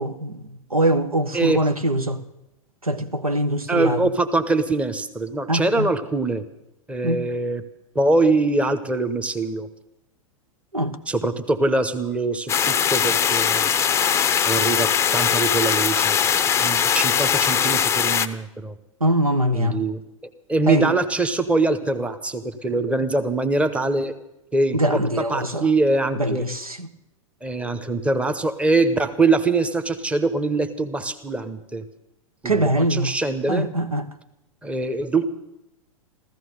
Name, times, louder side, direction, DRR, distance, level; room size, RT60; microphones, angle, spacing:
voice 1, 0.0-2.2 2.8-4.1 5.5-5.9 7.0-7.2 10.7-11.0 19.0-19.8 20.7-20.9 24.7-25.7 26.2-26.9 32.4-33.1 33.5-34.1, right 1 dB, 90° right, 1.0 m, -23 dB
voice 2, 3.7-6.4 6.9-7.6 7.9-9.7 11.1-13.7 14.4-16.2 16.6-18.7 19.5-20.0 20.5-24.1 24.5-26.4 27.4-31.8 32.4-33.7 34.6-35.2, right 2 dB, 5° right, 1.0 m, -23 dB
sound 1, 12.5-18.3, left 8 dB, 15° left, 0.6 m, -20 dB
14.5 x 14.5 x 6.6 m
figure-of-eight pair, 100°, 18 cm